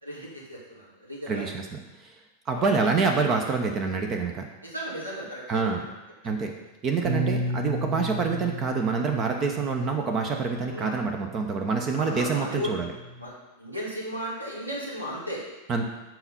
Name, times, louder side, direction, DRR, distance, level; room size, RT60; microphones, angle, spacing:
voice 1, 0.0-1.5 2.5-2.8 4.6-5.8 7.0-7.1 10.7-11.0 12.0-12.8 13.2-13.3 13.6-15.4, equal, 85° right, -5 dB, 2.6 m, -35 dB
voice 2, 1.3-2.1 2.5-4.5 5.5-5.8 6.2-6.5 6.8-12.9 15.7-15.8, right 4 dB, 30° right, 3 dB, 0.9 m, -26 dB
Bass guitar, 7.0-13.3, right 1 dB, 45° right, 1.4 m, -34 dB
7.9 x 4.5 x 5.7 m, 1.1 s
figure-of-eight pair, 90°, 0 cm